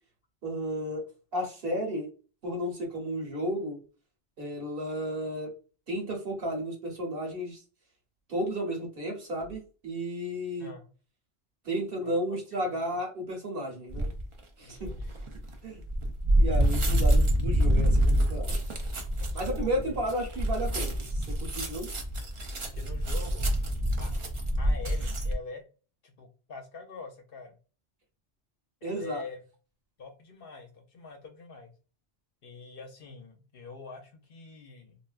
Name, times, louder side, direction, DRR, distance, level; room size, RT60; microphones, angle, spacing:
voice 1, 0.4-1.0 1.3-2.1 2.4-3.8 4.4-5.5 5.9-7.6 8.3-10.7 11.6-14.1 14.6-14.9 15.6-15.8 16.4-18.6 19.3-21.9 28.8-29.2, equal, 55° right, 1 dB, 1.1 m, -33 dB
voice 2, 10.6-10.9 12.0-12.1 12.5-12.7 14.6-15.1 19.2-19.9 22.6-23.5 24.0-24.2 24.6-25.6 26.0-27.6 28.8-29.4 30.0-31.7 32.4-35.0, left 4 dB, 60° left, 3 dB, 0.8 m, -45 dB
sound 1, 13.9-14.2 14.8-25.3, equal, 40° right, 0.4 m, -27 dB
3.3 x 2.5 x 2.3 m, 0.36 s
omnidirectional pair, 1.1 m